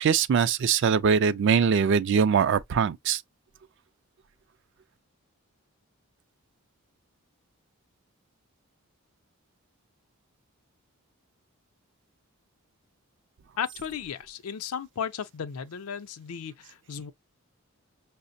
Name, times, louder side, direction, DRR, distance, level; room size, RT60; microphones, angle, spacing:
voice 1, 0.0-3.2, right 6 dB, 55° right, 0.3 m, -22 dB
voice 2, 13.6-17.1, left 7 dB, 80° left, 0.5 m, -35 dB
5.6 x 2.0 x 2.6 m
head